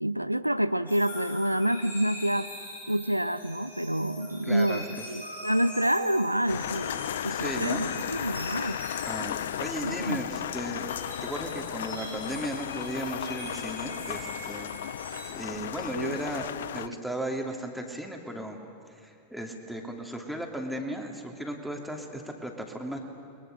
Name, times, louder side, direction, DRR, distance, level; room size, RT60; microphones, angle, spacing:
voice 1, 0.0-2.6 2.9-8.8 9.8-10.2 16.0-16.2 16.9-17.0, right 1 dB, 90° right, 13 dB, 0.5 m, -28 dB
sound 1, 0.9-15.3, equal, 85° left, 6.0 m, -42 dB
voice 2, 4.5-4.8 7.3-7.9 9.0-10.9 11.2-14.7 15.3-18.6 19.0-23.0, right 1 dB, ahead, 1 dB, 2.8 m, -35 dB
sound 2, 6.5-16.9, left 10 dB, 60° left, 0.5 m, -35 dB
29.5 x 22.0 x 6.6 m, 2.4 s
figure-of-eight pair, 90°, 0 cm